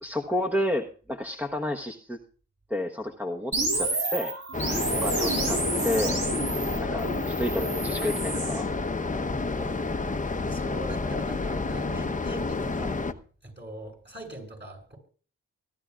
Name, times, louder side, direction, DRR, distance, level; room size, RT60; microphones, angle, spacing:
voice 1, 0.0-2.2 2.7-4.3 5.0-6.2 6.8-8.7 9.1-9.8, left 1 dB, 5° right, 2 dB, 1.2 m, -31 dB
sound 1, 3.5-8.6, right 2 dB, 60° right, 4.3 m, -30 dB
sound 2, 4.5-13.1, left 3 dB, 25° left, 1.0 m, -30 dB
voice 2, 4.7-5.0 6.9-7.0 10.4-13.0 13.4-15.0, right 1 dB, 35° right, 1 dB, 7.8 m, -42 dB
24.5 x 11.5 x 2.5 m, 0.40 s
supercardioid pair, 45°, 32 cm